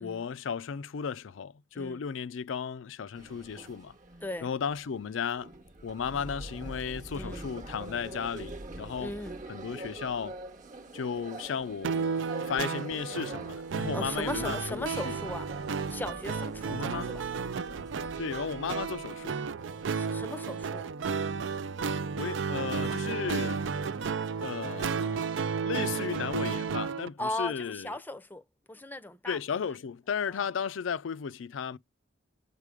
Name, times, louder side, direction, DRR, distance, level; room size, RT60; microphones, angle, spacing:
voice 1, 0.0-3.9 4.4-5.5 5.8-9.1 9.5-10.4 10.9-12.2 12.5-15.2 16.7-17.1 18.2-19.4 22.2-23.7 24.4-25.3 25.6-27.9 29.3-31.8, left 6 dB, 80° left, 0.4 m, -35 dB
sound 1, 3.1-19.9, right 2 dB, 40° right, 1.0 m, -45 dB
voice 2, 7.1-7.5 9.0-9.4 13.9-15.5 15.9-17.3 20.0-20.9 27.2-29.4 30.3-30.5, left 2 dB, 10° left, 0.6 m, -38 dB
sound 2, 11.8-27.1, right 5 dB, 70° right, 0.4 m, -33 dB
7.4 x 4.9 x 5.0 m
head